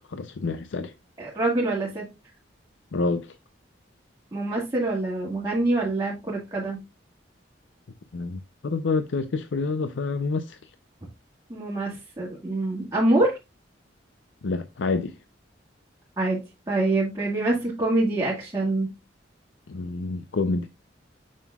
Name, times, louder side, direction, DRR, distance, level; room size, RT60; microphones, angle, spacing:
voice 1, 0.1-0.9 2.9-3.3 8.1-10.7 14.4-15.2 19.7-20.7, left 3 dB, 80° left, 0.5 m, -28 dB
voice 2, 1.2-2.1 4.3-6.8 11.5-13.3 16.2-16.4 16.7-18.9, right 2 dB, 20° right, 2.0 m, -25 dB
6.9 x 6.5 x 2.3 m
head